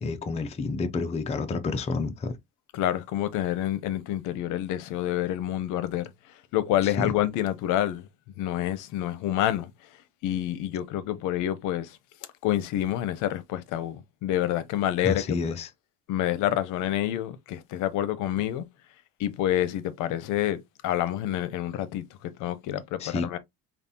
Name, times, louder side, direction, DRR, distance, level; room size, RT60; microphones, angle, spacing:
voice 1, 0.0-2.4 6.8-7.1 15.0-15.7 23.0-23.4, left 4 dB, 20° left, 0.5 m, -29 dB
voice 2, 2.7-6.0 6.5-8.1 8.4-9.7 10.2-12.0 12.4-15.4 16.1-18.6 19.2-23.4, left 12 dB, 65° left, 0.7 m, -28 dB
5.2 x 2.4 x 2.7 m
cardioid pair, 130°, 32 cm